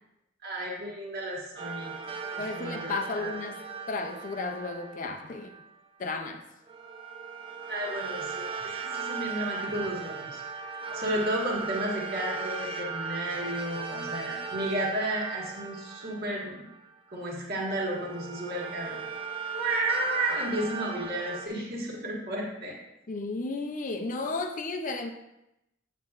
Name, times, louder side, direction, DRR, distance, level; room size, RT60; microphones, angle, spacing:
voice 1, 0.4-1.9 2.3-3.3 7.7-16.6 17.1-19.0 19.5-22.7, right 1 dB, 50° right, -3 dB, 1.6 m, -33 dB
sound 1, 1.6-5.8 6.7-17.1 17.6-21.5, right 5 dB, 25° right, 0.4 m, -37 dB
voice 2, 2.4-5.5 6.0-6.4 23.1-25.1, left 3 dB, 40° left, 5 dB, 0.5 m, -33 dB
7.7 x 6.5 x 2.4 m, 0.88 s
head